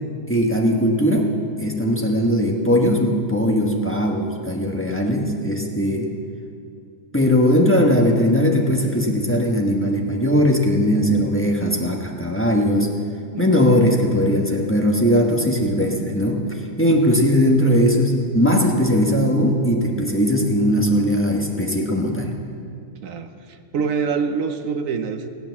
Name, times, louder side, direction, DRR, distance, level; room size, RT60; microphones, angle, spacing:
voice 1, 0.3-1.3 1.6-6.1 7.1-12.9 13.4-16.4 16.8-22.4, equal, 10° left, 0 dB, 1.3 m, -19 dB
voice 2, 23.0-25.3, right 5 dB, 75° right, 8 dB, 1.2 m, -26 dB
17.5 x 8.8 x 7.2 m, 2.4 s
omnidirectional pair, 1.4 m